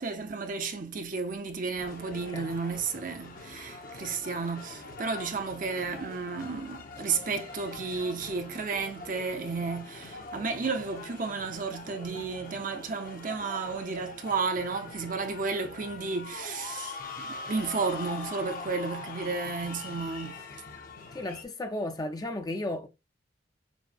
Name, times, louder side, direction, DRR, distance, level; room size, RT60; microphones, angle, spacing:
voice 1, 0.0-20.4, right 4 dB, 45° right, 0.6 m, -33 dB
sound 1, 1.8-21.4, left 3 dB, 50° left, 0.8 m, -43 dB
voice 2, 21.1-22.9, left 1 dB, 20° left, 0.5 m, -34 dB
6.2 x 2.1 x 2.5 m
head